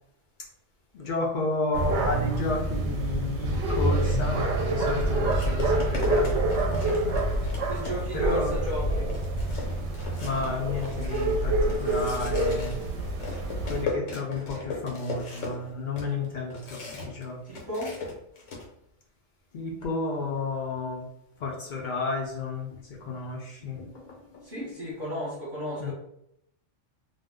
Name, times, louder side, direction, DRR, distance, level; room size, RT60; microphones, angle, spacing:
voice 1, 0.9-7.2 8.1-8.6 10.2-12.8 13.7-17.4 19.5-21.1 21.4-24.5 25.8-25.9, left 3 dB, 60° left, -1 dB, 0.5 m, -32 dB
sound 1, 1.7-13.9, right 2 dB, 70° right, 0.8 m, -27 dB
sound 2, 4.3-4.5 5.3-8.3 8.7-8.8 9.1-17.2 17.5-18.7, left 3 dB, 85° left, 1.2 m, -38 dB
voice 2, 7.7-9.1 17.5-17.9 24.4-25.9, equal, 45° right, -7 dB, 0.9 m, -34 dB
2.5 x 2.0 x 3.5 m, 0.75 s
omnidirectional pair, 1.2 m